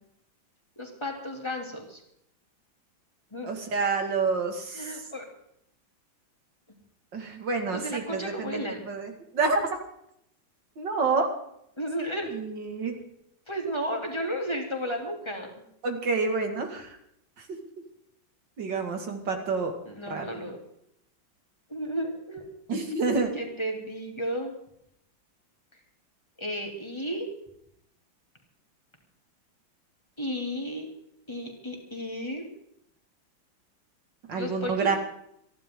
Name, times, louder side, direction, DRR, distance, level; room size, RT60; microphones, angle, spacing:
voice 1, 0.8-2.0 3.3-3.5 4.7-5.3 7.7-8.8 11.8-12.3 13.5-15.5 19.8-20.6 21.7-22.5 23.3-24.5 26.4-27.3 30.2-30.9 31.3-32.5 34.3-35.0, equal, 15° left, 1 dB, 2.9 m, -33 dB
voice 2, 3.5-5.0 7.1-9.7 10.8-11.3 12.2-13.0 15.8-17.0 17.4-17.5 18.6-19.7 20.1-20.3 22.7-23.4 34.3-35.0, right 4 dB, 65° right, 4 dB, 2.8 m, -28 dB
27.5 x 11.5 x 3.8 m, 0.75 s
omnidirectional pair, 2.1 m